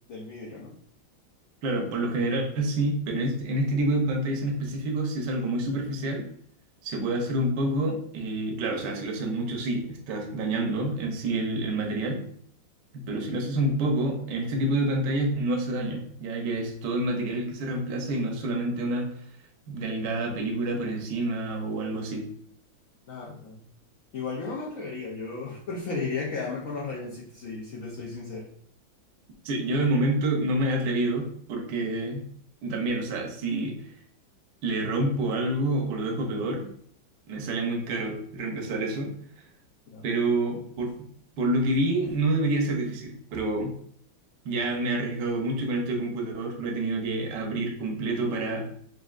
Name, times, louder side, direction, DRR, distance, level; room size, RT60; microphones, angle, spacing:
voice 1, 0.1-0.7 23.1-23.6 24.1-28.5 39.9-40.0, left 4 dB, 70° left, -4 dB, 0.8 m, -34 dB
voice 2, 1.6-6.3 6.8-12.2 13.1-19.1 19.7-22.2 29.4-32.2 32.6-33.7 34.6-36.7 37.3-39.5 40.0-41.0 41.4-43.7 44.4-48.7, right 2 dB, 70° right, 1 dB, 1.3 m, -28 dB
5.2 x 2.6 x 2.4 m, 0.63 s
omnidirectional pair, 2.2 m